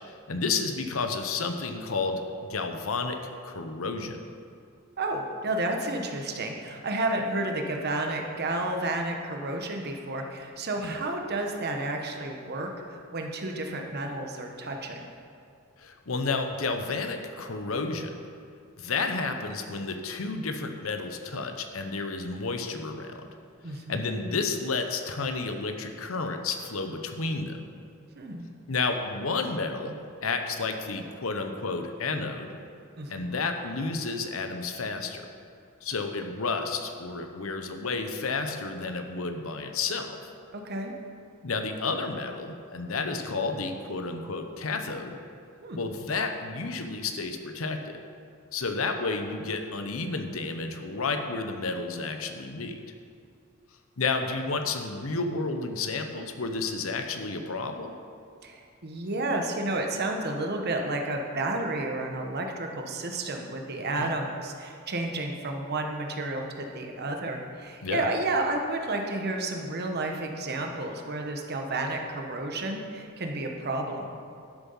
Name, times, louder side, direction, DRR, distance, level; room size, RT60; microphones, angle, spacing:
voice 1, 0.3-2.2 2.5-4.2 10.8-10.9 15.8-18.1 18.8-23.3 23.7-27.6 28.7-30.0 30.2-32.6 33.1-35.3 35.8-40.2 41.4-45.2 45.7-48.0 48.5-52.7 54.0-58.0 64.0-64.1 67.8-68.1, left 4 dB, 75° left, 6 dB, 0.9 m, -31 dB
voice 2, 5.0-15.1 23.6-24.0 28.1-28.5 33.0-33.4 40.5-40.9 45.6-45.8 58.4-74.1, right 2 dB, 50° right, 3 dB, 1.1 m, -31 dB
12.0 x 7.1 x 5.6 m, 2.4 s
head